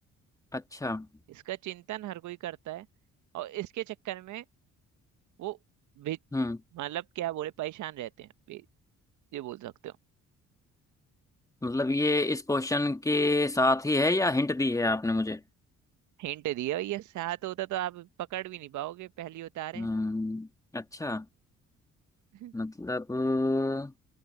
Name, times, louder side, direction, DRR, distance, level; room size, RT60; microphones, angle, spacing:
voice 1, 0.5-1.1 6.3-6.6 11.6-15.4 19.7-20.5 20.7-21.2 22.5-23.9, left 2 dB, 10° left, 1.5 m, -27 dB
voice 2, 1.3-2.9 3.3-4.4 5.4-5.6 6.0-6.2 6.7-8.6 9.3-9.9 16.2-19.9 22.3-22.5, right 14 dB, 75° right, 0.7 m, -36 dB
cardioid pair, 90°, 30 cm